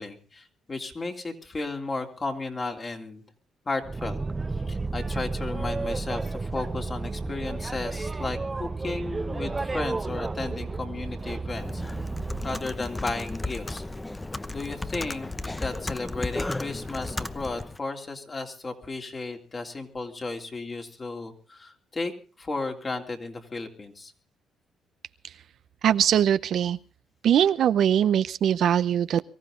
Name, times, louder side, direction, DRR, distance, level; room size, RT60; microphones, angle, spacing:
voice 1, 0.0-3.2 3.6-4.2 4.7-11.8 12.4-13.8 14.5-15.3 15.6-22.1 22.4-24.1, left 3 dB, 30° left, 3 dB, 3.2 m, -34 dB
Boat Water vehicle, 3.8-12.7, right 3 dB, 20° right, 0.7 m, -32 dB
Computer keyboard, 11.6-17.8, left 2 dB, 15° left, 0.9 m, -34 dB
voice 2, 25.8-26.8 27.2-29.2, right 9 dB, 70° right, 14 dB, 0.7 m, -21 dB
23.5 x 15.0 x 3.8 m, 0.36 s
cardioid pair, 90°, 0 cm